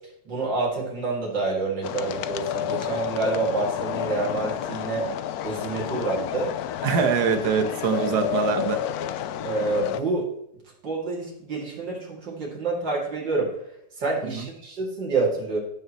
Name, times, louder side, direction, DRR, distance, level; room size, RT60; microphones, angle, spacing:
voice 1, 0.2-5.1 5.4-6.5 7.0-7.1 7.9-8.1 9.4-10.3 10.8-13.5 14.0-15.6, right 3 dB, 85° right, -4 dB, 3.3 m, -27 dB
sound 1, 1.8-10.0, left 11 dB, 70° left, 1.0 m, -30 dB
voice 2, 6.8-8.8 14.3-14.5, right 6 dB, 65° right, 6 dB, 1.6 m, -23 dB
16.5 x 6.5 x 3.1 m, 0.77 s
omnidirectional pair, 1.9 m